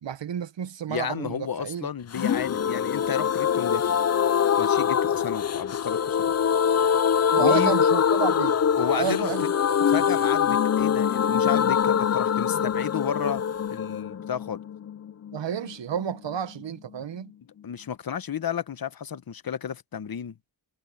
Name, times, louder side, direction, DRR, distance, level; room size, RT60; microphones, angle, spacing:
voice 1, 0.0-1.9 7.3-9.4 15.3-17.3, right 8 dB, 80° right, 1.1 m, -31 dB
voice 2, 0.9-3.9 4.6-6.2 7.4-7.7 8.8-9.3 9.9-13.4 13.7-14.6 17.6-20.3, left 8 dB, 55° left, 1.0 m, -32 dB
sound 1, 2.1-15.7 16.0-16.1 16.3-16.4, left 8 dB, 40° left, 0.4 m, -24 dB
wide cardioid pair, 100°, 43 cm